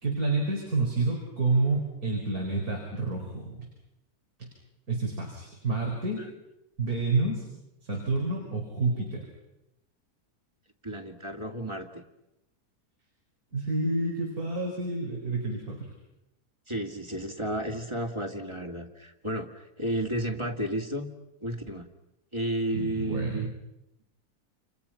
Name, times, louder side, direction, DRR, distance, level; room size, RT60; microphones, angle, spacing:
voice 1, 0.0-3.7 4.4-4.5 4.9-6.3 6.8-7.5 7.8-9.3 13.5-15.9 22.7-23.5, right 3 dB, 65° right, 0 dB, 5.3 m, -29 dB
voice 2, 10.8-12.0 16.7-21.1 21.4-21.9 22.3-23.5, right 1 dB, 20° right, 5 dB, 2.4 m, -32 dB
29.5 x 28.5 x 5.8 m, 0.89 s
omnidirectional pair, 1.7 m